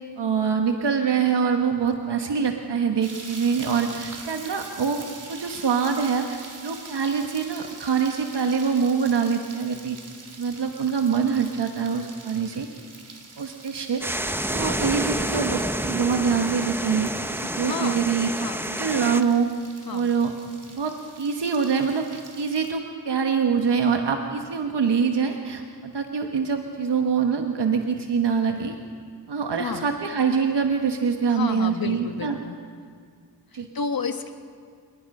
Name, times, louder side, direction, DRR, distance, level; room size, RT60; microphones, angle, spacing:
voice 1, 0.2-5.0 5.3-10.0 10.4-12.7 13.4-14.0 14.5-17.1 17.4-18.3 18.8-19.5 19.9-20.3 20.7-28.8 29.3-32.4 33.5-33.7, right 6 dB, 85° right, 4 dB, 1.3 m, -24 dB
sound 1, 3.0-22.7, right 3 dB, 50° right, 3.0 m, -44 dB
sound 2, 14.0-19.2, right 1 dB, 5° right, 0.8 m, -28 dB
voice 2, 14.5-14.9 17.6-18.0 18.3-18.7 19.8-20.1 29.6-29.9 31.3-32.6 33.5-34.3, left 5 dB, 60° left, 7 dB, 1.5 m, -31 dB
27.5 x 20.0 x 5.5 m, 2.2 s
wide cardioid pair, 100°, 40 cm